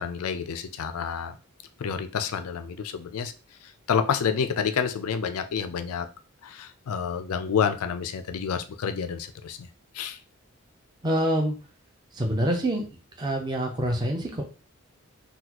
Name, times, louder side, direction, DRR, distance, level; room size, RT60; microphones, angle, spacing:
voice 1, 0.0-1.4 1.8-3.3 3.6-6.1 6.4-9.7 9.9-10.2, left 7 dB, 85° left, 9 dB, 0.4 m, -29 dB
voice 2, 11.0-11.5 12.1-12.8 13.2-14.4, right 1 dB, 20° right, 2 dB, 0.4 m, -26 dB
4.0 x 2.3 x 2.9 m, 0.35 s
head